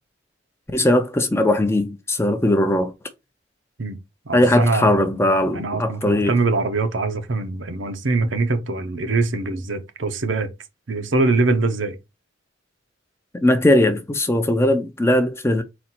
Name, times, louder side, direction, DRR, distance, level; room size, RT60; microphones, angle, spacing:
voice 1, 0.7-2.9 4.3-6.3 13.3-15.6, left 1 dB, 15° left, 0.5 m, -19 dB
voice 2, 4.3-5.0 5.5-10.5 10.9-12.0, right 3 dB, 80° right, 0.8 m, -23 dB
4.1 x 2.5 x 4.2 m
head